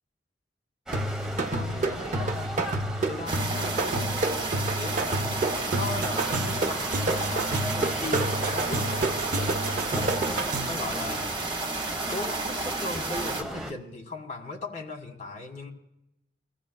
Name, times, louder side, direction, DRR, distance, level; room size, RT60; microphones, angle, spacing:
sound 1, 0.9-13.7, equal, 5° right, 1.0 m, -38 dB
sound 2, 0.9-10.9, right 2 dB, 45° right, 0.7 m, -29 dB
voice 1, 1.5-2.6 3.1-9.2 9.9-11.3 12.1-15.7, left 2 dB, 45° left, 1 dB, 1.7 m, -37 dB
sound 3, 3.3-13.4, right 3 dB, 30° right, 1.5 m, -32 dB
24.0 x 15.0 x 2.3 m, 0.85 s
head